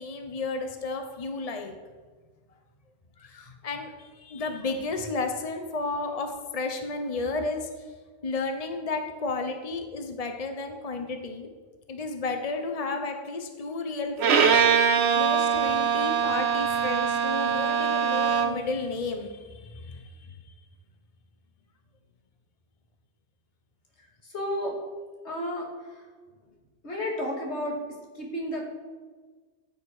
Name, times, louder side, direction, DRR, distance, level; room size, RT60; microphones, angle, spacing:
voice 1, 0.0-1.7 3.2-7.9 8.2-11.5 11.9-20.5, left 3 dB, 35° left, 5 dB, 1.1 m, -33 dB
Bowed string instrument, 14.2-18.7, right 7 dB, 80° right, 1.1 m, -23 dB
voice 2, 24.2-24.8 25.2-25.7 25.9-26.0 26.8-27.8 28.1-28.8, left 1 dB, 80° left, -1 dB, 2.8 m, -31 dB
15.0 x 8.2 x 4.9 m, 1.4 s
omnidirectional pair, 1.1 m